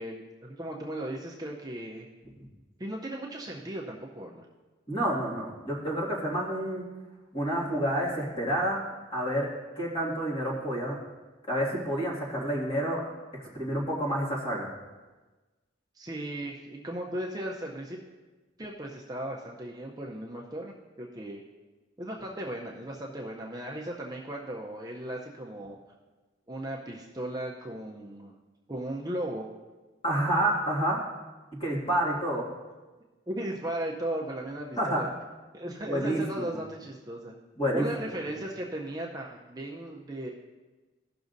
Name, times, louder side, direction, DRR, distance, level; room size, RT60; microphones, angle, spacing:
voice 1, 0.0-2.1 2.8-4.5 15.9-18.0 18.6-21.4 22.0-25.8 26.5-28.3 28.7-29.5 33.3-35.1 35.5-37.3 37.7-40.3, right 1 dB, 20° right, -2 dB, 0.6 m, -36 dB
voice 2, 4.9-6.9 7.3-8.8 9.1-11.0 11.5-13.0 13.5-14.7 30.0-31.0 31.6-32.5 34.8-35.1 35.9-36.6 37.6-37.9, right 1 dB, 25° left, -5 dB, 2.1 m, -29 dB
16.0 x 6.1 x 2.6 m, 1.2 s
head